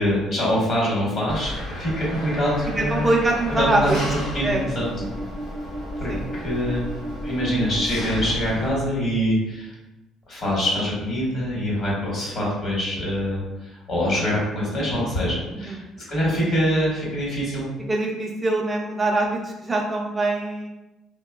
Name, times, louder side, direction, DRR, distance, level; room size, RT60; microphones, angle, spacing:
voice 1, 0.0-3.0 3.6-4.9 6.0-6.1 6.4-6.8 7.2-9.7 10.3-15.8 16.1-17.6, equal, 50° left, -5 dB, 1.1 m, -24 dB
Engine, 1.3-8.7, equal, 80° left, 1.0 m, -32 dB
voice 2, 2.8-4.0 4.4-4.6 5.0-5.1 6.1-6.3 15.6-15.8 17.9-20.7, right 2 dB, 20° right, -1 dB, 0.4 m, -23 dB
2.8 x 2.1 x 2.3 m, 0.98 s
cardioid pair, 100°, 0 cm